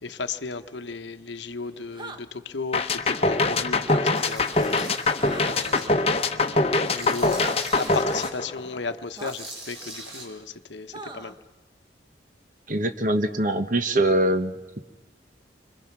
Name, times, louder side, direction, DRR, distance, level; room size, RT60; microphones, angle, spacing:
voice 1, 0.0-7.4 7.7-11.4, left 4 dB, 70° left, 10 dB, 1.0 m, -35 dB
sound 1, 1.9-2.2 3.8-4.0 5.3-5.6 7.4-7.6 9.2-9.3 10.9-11.4, right 3 dB, 25° right, 1.0 m, -37 dB
sound 2, 2.7-8.9, left 3 dB, 30° left, 1.0 m, -23 dB
Tools, 4.1-5.9 6.3-8.3 9.1-10.2, right 2 dB, 60° right, 7.1 m, -41 dB
voice 2, 12.7-14.6, right 1 dB, 45° right, 9 dB, 1.2 m, -23 dB
28.5 x 24.5 x 6.0 m, 1.2 s
head